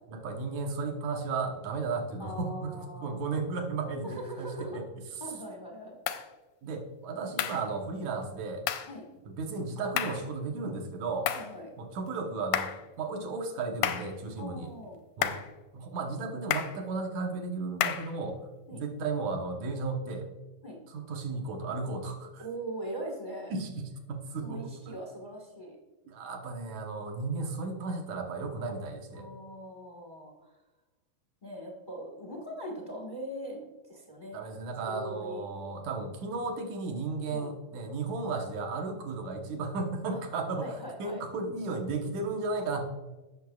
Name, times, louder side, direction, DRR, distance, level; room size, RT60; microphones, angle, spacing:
voice 1, 0.1-4.9 6.6-8.6 9.3-11.3 11.8-12.7 13.0-14.7 15.2-15.4 15.7-18.4 18.7-20.3 20.9-22.5 23.5-24.7 26.1-29.3 34.3-40.7 41.0-42.8, right 3 dB, 70° right, 3 dB, 2.4 m, -34 dB
voice 2, 2.2-3.2 4.0-4.8 5.2-6.0 8.8-9.0 11.3-11.7 14.4-15.0 18.7-18.8 20.6-20.8 22.4-23.5 24.4-25.8 29.1-30.5 31.4-33.6 33.9-34.4 34.8-35.4 37.3-37.5 40.1-40.2 40.6-41.2, right 1 dB, 40° left, -1 dB, 0.6 m, -41 dB
sound 1, 6.1-6.3 7.4-7.7 8.7-8.9 10.0-10.3 11.3-11.5 12.5-12.8 13.8-14.1 15.2-15.5 16.5-16.8 17.8-18.1, left 11 dB, 90° left, 2.2 m, -31 dB
17.0 x 6.5 x 2.4 m, 1.2 s
omnidirectional pair, 3.6 m